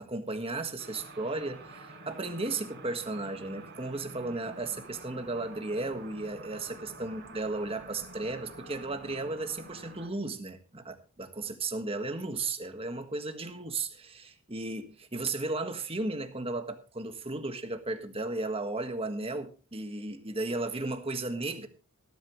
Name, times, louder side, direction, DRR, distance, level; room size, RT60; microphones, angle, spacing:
voice 1, 0.0-21.7, right 2 dB, 25° right, 1.5 m, -35 dB
sound 1, 0.8-10.1, right 2 dB, 50° right, 5.6 m, -48 dB
18.5 x 11.5 x 3.1 m
head